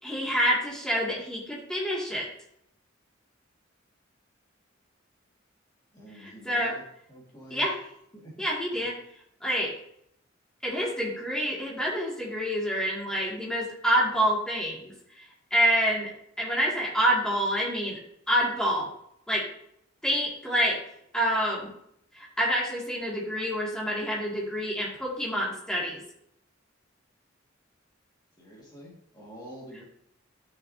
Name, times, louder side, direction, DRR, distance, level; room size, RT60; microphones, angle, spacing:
voice 1, 0.0-2.3 6.1-6.8 7.5-7.8 8.4-9.0 9.4-9.7 10.6-16.1 16.4-18.0 18.3-18.9 19.3-19.5 20.0-20.8 21.1-21.7 22.1-26.0, equal, 5° left, -5 dB, 2.3 m, -27 dB
voice 2, 5.9-6.8 7.1-7.7 8.1-8.3 8.7-8.9 28.4-29.8, equal, 20° left, -4 dB, 2.0 m, -46 dB
11.0 x 6.7 x 2.8 m, 0.73 s
head